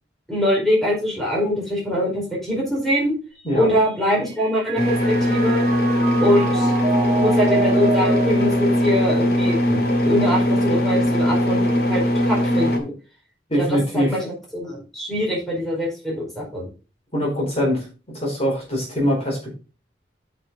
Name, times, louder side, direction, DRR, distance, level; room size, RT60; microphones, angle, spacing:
voice 1, 0.3-3.1 3.5-5.6 6.2-6.7 7.2-12.9 13.6-16.7, equal, ahead, -4 dB, 4.6 m, -23 dB
Mallet percussion, 3.4-9.8, right 4 dB, 40° right, 4.4 m, -29 dB
sound 1, 4.8-12.8, equal, 55° left, 2.1 m, -20 dB
voice 2, 13.5-14.2 17.1-17.8 18.1-19.5, equal, 35° left, -3 dB, 4.4 m, -22 dB
9.2 x 6.5 x 4.0 m, 0.33 s
head